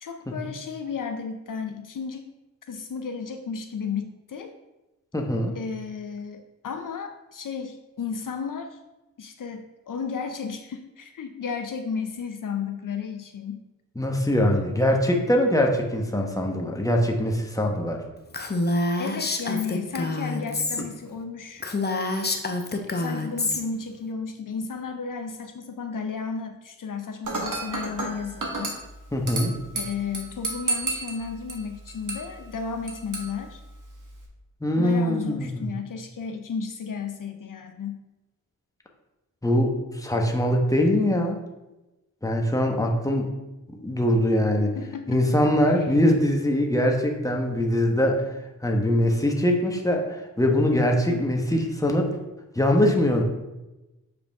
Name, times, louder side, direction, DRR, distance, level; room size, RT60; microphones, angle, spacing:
voice 1, 0.0-2.3 2.7-4.5 5.5-8.8 9.2-13.6 19.0-21.7 22.5-28.8 29.7-33.6 34.8-38.0 44.8-45.3 45.7-46.0 51.1-51.2, left 5 dB, 65° left, 7 dB, 0.6 m, -33 dB
voice 2, 5.1-5.5 14.0-18.0 29.1-29.5 34.6-35.7 39.4-41.4 42.2-43.3 43.7-44.7 45.1-48.2 48.6-52.1 52.5-53.2, left 1 dB, 10° left, 1 dB, 1.2 m, -22 dB
Female speech woman speaking, 18.3-20.8 21.2-21.3 21.6-23.6, left 2 dB, 30° left, 0.8 m, -27 dB
Dishes pots and pans / Glass, 27.2-34.2, right 2 dB, 60° right, 1.4 m, -33 dB
7.2 x 4.9 x 3.5 m, 1.0 s
cardioid pair, 55°, 35 cm